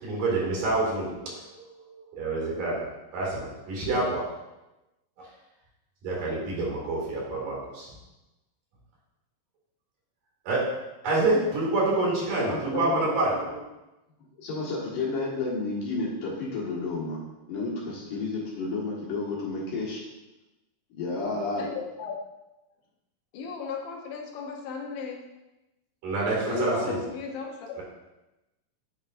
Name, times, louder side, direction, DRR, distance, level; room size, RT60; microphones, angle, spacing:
voice 1, 0.0-2.9 3.1-4.3 5.2-5.3 6.0-7.9 10.5-10.7 11.0-13.6 26.0-27.0, right 2 dB, 70° right, -4 dB, 3.9 m, -27 dB
voice 2, 12.4-13.1 14.4-17.2 17.5-20.0 20.9-21.7 26.5-26.9, left 3 dB, 65° left, -5 dB, 3.2 m, -31 dB
voice 3, 21.4-22.2 23.3-25.2 26.9-27.8, left 5 dB, 85° left, 1 dB, 2.7 m, -36 dB
8.9 x 6.3 x 2.6 m, 0.99 s
omnidirectional pair, 4.1 m